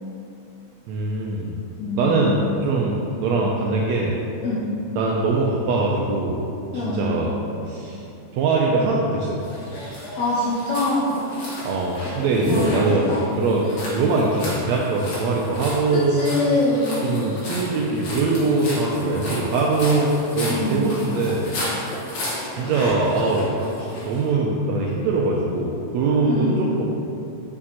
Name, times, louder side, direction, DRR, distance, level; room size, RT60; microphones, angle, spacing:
voice 1, 0.9-1.6 2.0-4.2 5.0-6.4 6.7-7.4 7.7-8.0 8.3-9.3 11.6-16.2 17.0-20.1 20.4-21.4 22.6-23.5 23.8-26.8, right 3 dB, 85° right, -2 dB, 1.5 m, -22 dB
voice 2, 1.8-2.1 4.4-4.7 6.7-7.1 10.2-11.2 12.5-13.4 13.8-14.0 15.9-17.0 20.5-20.8 26.2-26.7, left 2 dB, 75° left, -5 dB, 1.7 m, -24 dB
sound 1, 9.4-24.2, left 1 dB, 60° left, 2.5 m, -32 dB
6.6 x 5.9 x 2.9 m, 2.7 s
omnidirectional pair, 3.6 m